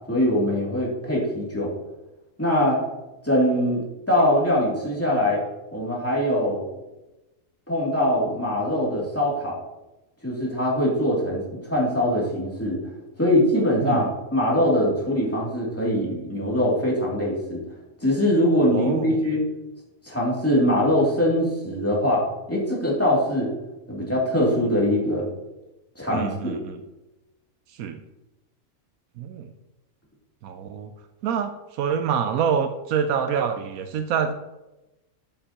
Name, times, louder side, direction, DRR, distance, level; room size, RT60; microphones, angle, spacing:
voice 1, 0.1-1.7 2.4-2.8 3.2-5.4 5.7-6.6 7.7-9.6 10.2-12.8 13.2-14.1 14.3-17.6 18.0-19.4 20.0-23.5 23.9-25.3 25.9-26.6, left 1 dB, 10° left, -5 dB, 2.6 m, -22 dB
voice 2, 18.7-19.2 26.1-26.8 27.8-28.0 29.2-29.5 30.4-30.9 31.2-34.3, right 7 dB, 85° right, 8 dB, 1.1 m, -26 dB
12.0 x 6.7 x 2.9 m, 1.0 s
omnidirectional pair, 1.5 m